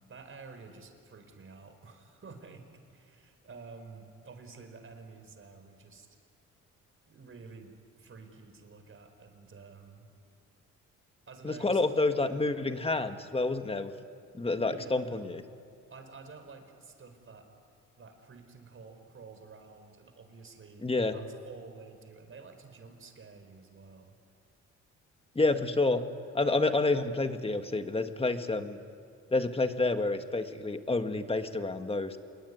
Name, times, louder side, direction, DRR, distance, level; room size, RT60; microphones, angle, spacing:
voice 1, 0.1-2.6 2.9-6.1 7.1-10.1 11.3-11.8 14.6-15.2 15.9-17.5 18.0-24.2, right 4 dB, 45° right, 6 dB, 4.8 m, -50 dB
voice 2, 11.4-13.9 14.3-15.4 20.8-21.1 25.3-26.0 26.3-28.8 29.3-32.2, left 3 dB, 20° left, 7 dB, 1.8 m, -29 dB
28.5 x 21.5 x 9.6 m, 2.2 s
cardioid pair, 90°, 30 cm